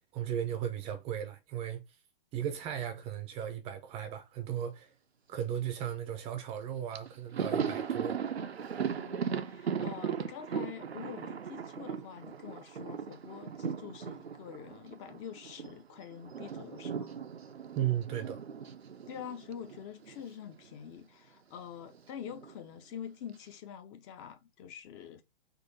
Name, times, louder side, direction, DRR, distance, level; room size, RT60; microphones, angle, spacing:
voice 1, 0.1-1.8 2.3-4.9 5.3-8.2 17.8-18.4, right 10 dB, 20° right, 0.5 m, -36 dB
Thunder, 6.6-6.7 6.9-15.8 16.0-20.3 20.6-20.8 21.9-22.6, right 7 dB, 90° right, 0.6 m, -37 dB
voice 2, 8.9-17.2 19.1-25.2, left 8 dB, 30° left, 0.6 m, -46 dB
3.9 x 2.6 x 4.0 m
figure-of-eight pair, 120°, 31 cm